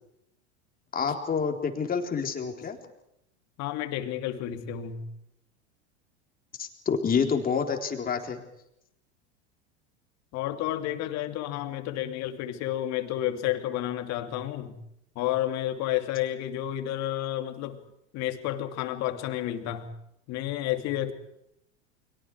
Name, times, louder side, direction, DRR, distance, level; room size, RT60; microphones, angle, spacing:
voice 1, 0.9-2.8 6.6-8.4, left 6 dB, 25° left, 4 dB, 4.0 m, -28 dB
voice 2, 3.6-5.1 10.3-14.8 15.1-17.8 18.1-19.9 20.3-21.1, left 12 dB, 50° left, 7 dB, 2.9 m, -31 dB
30.0 x 23.5 x 4.9 m, 0.79 s
hypercardioid pair, 95°, 35 cm